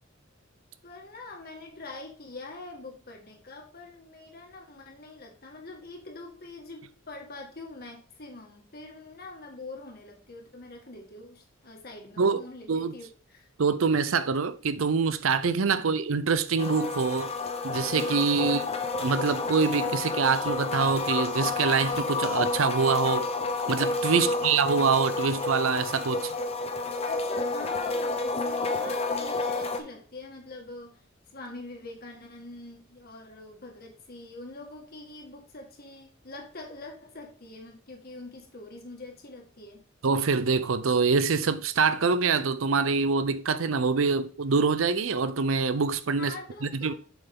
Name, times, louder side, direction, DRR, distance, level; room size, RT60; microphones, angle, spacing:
voice 1, 0.8-13.5 15.7-15.9 18.4-18.7 24.1-24.4 27.1-31.0 31.3-39.8 46.2-46.9, left 2 dB, 50° left, 1.9 m, -44 dB
voice 2, 13.6-17.3 17.6-18.6 19.0-23.3 23.7-26.3 40.0-46.3 46.6-46.9, right 5 dB, 75° right, 0.6 m, -25 dB
sound 1, 16.6-29.8, left 3 dB, 30° left, 0.9 m, -30 dB
7.3 x 5.6 x 3.7 m
head